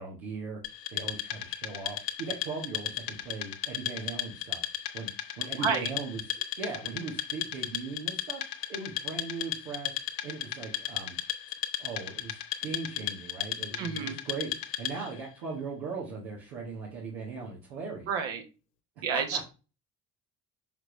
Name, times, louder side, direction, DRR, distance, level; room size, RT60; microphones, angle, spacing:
voice 1, 0.0-4.6 4.9-5.1 5.4-8.4 8.7-11.2 11.8-18.1 19.1-19.4, right 4 dB, 80° right, -4 dB, 1.5 m, -39 dB
Wood, 0.6-15.2, left 11 dB, 85° left, 0.8 m, -35 dB
voice 2, 5.6-5.9 13.8-14.2 18.1-18.4 19.0-19.4, right 6 dB, 65° right, 4 dB, 1.6 m, -30 dB
5.7 x 5.3 x 3.3 m, 0.31 s
hypercardioid pair, 50°, 48 cm